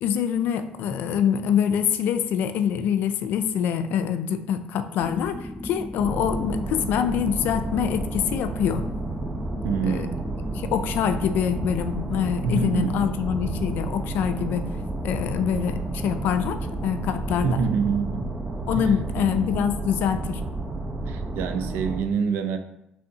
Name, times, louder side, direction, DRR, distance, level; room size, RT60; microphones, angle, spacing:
voice 1, 0.0-8.8 9.9-10.1 10.5-14.6 15.0-17.6 18.7-20.4, left 8 dB, 70° left, 10 dB, 0.4 m, -25 dB
sound 1, 5.0-19.4, left 1 dB, ahead, 0.3 m, -38 dB
sound 2, 6.0-22.0, right 2 dB, 20° right, 0.7 m, -31 dB
voice 2, 9.6-10.3 12.4-13.1 17.4-18.3 18.7-19.3 21.1-22.6, right 5 dB, 80° right, 7 dB, 0.5 m, -26 dB
5.4 x 3.5 x 2.8 m, 0.83 s
cardioid pair, 115°, 3 cm